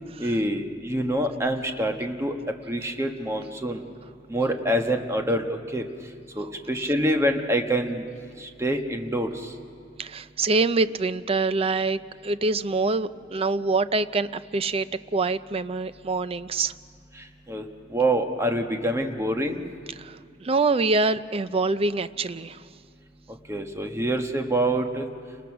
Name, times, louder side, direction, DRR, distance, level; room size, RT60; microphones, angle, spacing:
voice 1, 0.2-2.3 2.7-3.8 4.3-5.9 6.3-8.1 8.4-9.5 17.5-19.6 23.5-25.1, right 1 dB, 15° right, 4 dB, 1.3 m, -26 dB
voice 2, 10.0-14.9 15.1-16.7 20.0-22.6, right 3 dB, 30° right, 14 dB, 0.5 m, -25 dB
29.5 x 20.5 x 6.0 m, 2.3 s
head